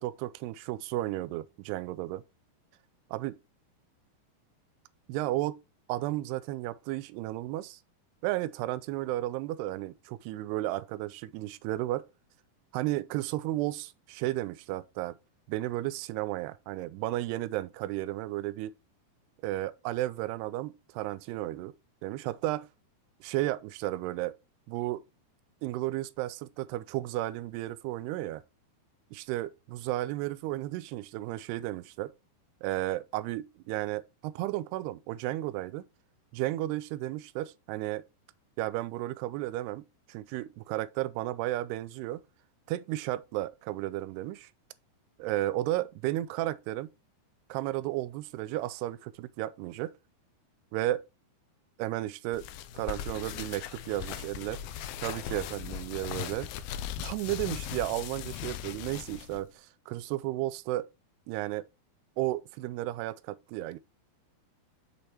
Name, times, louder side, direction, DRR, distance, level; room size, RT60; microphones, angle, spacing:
voice 1, 0.0-2.2 3.1-3.3 5.1-5.6 5.9-7.8 8.2-12.1 12.7-15.2 15.5-18.7 19.4-21.7 22.0-22.7 23.2-24.3 24.7-25.0 25.6-28.4 29.1-32.1 32.6-35.9 36.3-38.0 38.6-42.2 42.7-44.5 45.2-46.9 47.5-49.9 50.7-51.0 51.8-52.5 52.7-54.6 55.0-56.5 57.0-60.9 61.3-61.7 62.2-63.8, right 16 dB, 85° right, 2.5 m, -33 dB
sound 1, 52.3-59.4, left 10 dB, 80° left, 2.3 m, -39 dB
6.5 x 5.2 x 4.3 m
omnidirectional pair, 4.7 m